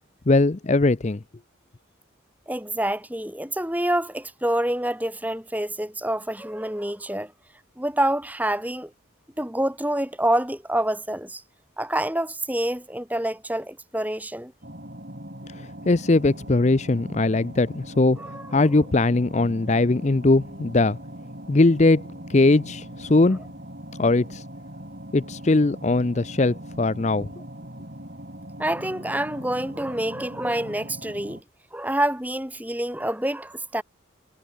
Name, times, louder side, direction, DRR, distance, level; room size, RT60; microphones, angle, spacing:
voice 1, 0.3-1.2 15.5-18.2 18.5-21.0 21.5-23.4 24.0-24.4 25.1-27.3, left 2 dB, 35° left, 0.5 m, -20 dB
voice 2, 2.5-7.3 7.8-8.9 9.4-11.4 11.8-14.5 18.2-18.6 28.6-31.4 31.7-33.8, right 1 dB, 10° right, 3.6 m, -27 dB
sound 1, 14.6-31.4, right 1 dB, 50° right, 7.1 m, -40 dB
head